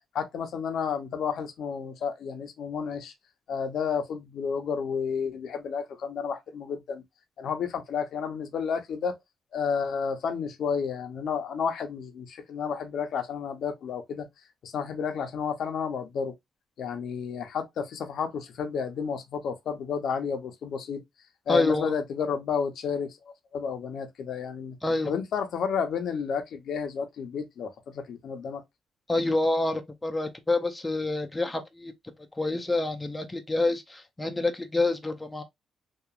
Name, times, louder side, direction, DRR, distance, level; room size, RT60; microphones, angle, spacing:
voice 1, 0.1-3.1 3.5-7.0 7.4-9.2 9.5-14.3 14.6-16.3 16.8-21.0 21.5-23.2 23.5-24.8 25.1-28.6, left 6 dB, 65° left, 0.6 m, -31 dB
voice 2, 21.5-21.9 24.8-25.2 29.1-31.9 32.4-35.4, left 2 dB, 15° left, 0.5 m, -27 dB
2.8 x 2.4 x 2.4 m
cardioid pair, 90°, 0 cm